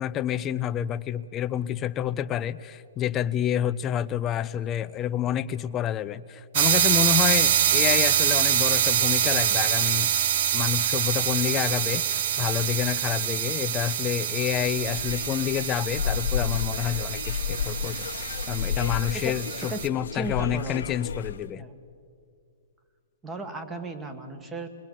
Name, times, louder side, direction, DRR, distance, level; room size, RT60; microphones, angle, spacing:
voice 1, 0.0-10.1 10.5-18.1 18.5-21.6, left 10 dB, 20° left, 14 dB, 0.6 m, -28 dB
sound 1, 6.5-19.9, right 10 dB, 50° right, 0.7 m, -25 dB
sound 2, 14.3-21.5, left 7 dB, 75° left, 1.1 m, -32 dB
voice 2, 19.1-19.9 20.1-20.9 21.6-21.7 23.2-24.7, right 2 dB, 10° right, 7 dB, 1.8 m, -36 dB
27.0 x 20.5 x 7.4 m, 2.3 s
hypercardioid pair, 150°, 0 cm